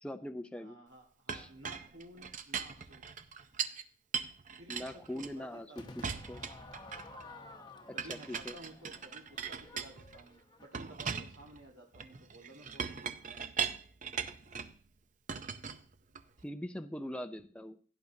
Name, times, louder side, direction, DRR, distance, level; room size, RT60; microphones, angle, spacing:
voice 1, 0.0-0.8 1.3-1.5 4.7-6.4 8.1-8.5 16.4-17.8, left 1 dB, 5° left, 7 dB, 0.5 m, -42 dB
voice 2, 0.6-3.0 4.5-6.0 7.2-7.6 7.9-13.1, right 1 dB, 70° right, -2 dB, 1.6 m, -54 dB
Chink clink, 1.3-3.8 4.1-5.6 6.0-7.3 8.0-10.3 10.7-14.8 15.3-16.4, right 6 dB, 40° right, 0.6 m, -39 dB
Crowd / Fireworks, 5.8-11.0, left 2 dB, 20° left, 0.9 m, -52 dB
16.5 x 9.3 x 2.7 m, 0.40 s
head